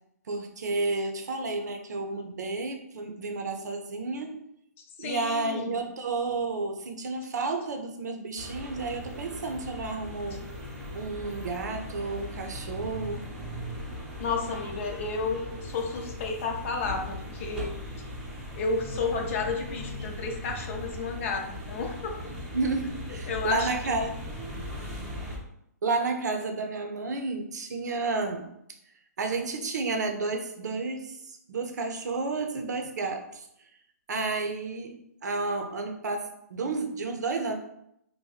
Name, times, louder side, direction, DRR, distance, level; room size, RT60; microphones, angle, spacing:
voice 1, 0.3-4.4 5.0-10.4 10.9-13.3 22.5-24.1 25.8-28.5 29.2-33.4 34.1-37.6, right 3 dB, 75° right, 5 dB, 0.6 m, -31 dB
voice 2, 5.0-5.8 14.2-17.7 18.5-22.1 23.3-24.1, left 4 dB, 45° left, 2 dB, 0.6 m, -32 dB
sound 1, 8.4-25.4, equal, 5° right, 0.7 m, -39 dB
2.7 x 2.2 x 4.0 m, 0.77 s
hypercardioid pair, 145°, 9 cm